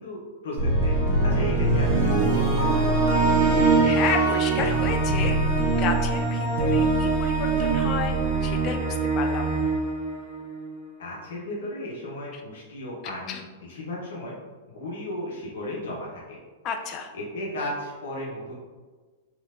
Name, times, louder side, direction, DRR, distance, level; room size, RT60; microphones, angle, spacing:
voice 1, 0.0-3.1 11.0-14.4 14.7-16.4 17.1-18.5, left 1 dB, 70° left, -3 dB, 0.7 m, -35 dB
sound 1, 0.6-10.8, right 3 dB, 40° right, 1.3 m, -23 dB
voice 2, 3.4-5.4 5.8-8.2 8.4-9.5 12.3-12.4 13.3-13.4 16.6-17.1, left 6 dB, 35° left, 5 dB, 0.4 m, -32 dB
3.1 x 2.8 x 2.4 m, 1.4 s
hypercardioid pair, 115°, 0 cm